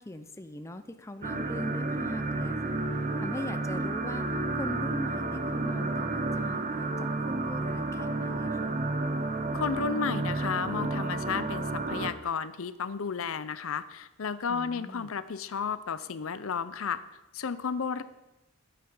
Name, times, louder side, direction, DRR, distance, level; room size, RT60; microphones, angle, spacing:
voice 1, 0.0-2.8 3.2-8.8 14.5-15.1, left 1 dB, 15° left, 9 dB, 0.5 m, -41 dB
sound 1, 1.2-12.1, right 2 dB, 35° right, 0.8 m, -31 dB
sound 2, 1.4-6.5, left 2 dB, 55° right, 2.4 m, -43 dB
voice 2, 9.5-17.0 17.3-18.0, left 6 dB, 65° left, 14 dB, 0.5 m, -33 dB
12.5 x 8.6 x 5.5 m, 1.0 s
head